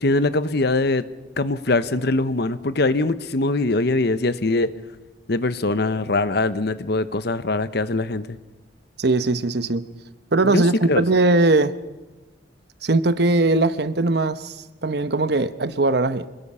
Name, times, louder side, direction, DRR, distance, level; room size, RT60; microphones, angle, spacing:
voice 1, 0.0-1.0 1.4-4.7 5.3-8.4 10.4-11.0, left 2 dB, 60° left, 13 dB, 0.9 m, -22 dB
voice 2, 9.0-9.9 10.3-11.7 12.8-16.3, right 2 dB, 60° right, 13 dB, 0.9 m, -20 dB
26.5 x 20.5 x 5.6 m, 1.1 s
head